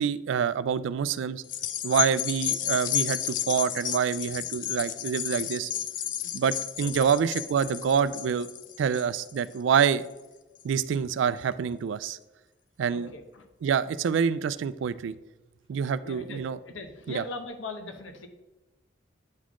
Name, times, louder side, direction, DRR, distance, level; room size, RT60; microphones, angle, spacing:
voice 1, 0.0-1.4 1.8-5.7 6.3-8.5 8.8-10.0 10.6-12.2 12.8-13.1 13.6-15.1 15.7-16.6 17.1-17.2, right 7 dB, 75° right, 16 dB, 0.3 m, -26 dB
sound 1, 1.4-10.1 10.6-10.7, left 10 dB, 40° left, 0.4 m, -32 dB
voice 2, 12.9-13.5 16.0-18.3, left 2 dB, 85° left, 6 dB, 0.8 m, -40 dB
9.5 x 4.1 x 3.0 m, 1.1 s
head